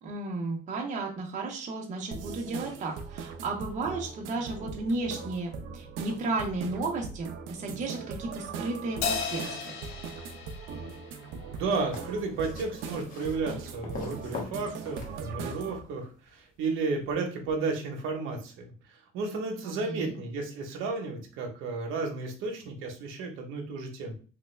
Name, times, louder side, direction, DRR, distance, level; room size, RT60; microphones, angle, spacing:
voice 1, 0.0-9.7 19.6-20.2, right 3 dB, 35° right, 0 dB, 0.7 m, -34 dB
sound 1, 2.1-15.8, right 5 dB, 70° right, 0.5 m, -40 dB
Crash cymbal, 9.0-11.7, left 6 dB, 85° left, 0.5 m, -35 dB
voice 2, 11.5-18.7 19.1-24.2, right 4 dB, 90° right, 2 dB, 0.9 m, -33 dB
sound 2, 11.6-15.8 17.0-17.1, left 3 dB, 45° left, 0.8 m, -43 dB
3.3 x 2.2 x 3.2 m, 0.39 s
cardioid pair, 165°, 20 cm